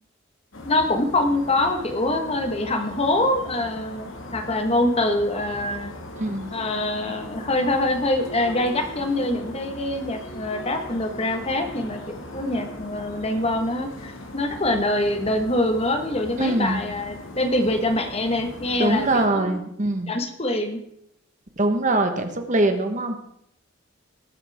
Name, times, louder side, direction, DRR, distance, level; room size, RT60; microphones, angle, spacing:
sound 1, 0.5-19.3, left 1 dB, 70° left, 1.8 m, -39 dB
voice 1, 0.6-5.9 6.5-12.0 12.3-19.6 20.1-20.8, left 1 dB, 30° left, 5 dB, 1.3 m, -24 dB
voice 2, 6.2-6.5 16.4-16.8 18.8-20.1 21.6-23.2, right 2 dB, 40° right, 6 dB, 1.1 m, -23 dB
19.0 x 8.4 x 3.5 m, 0.74 s
head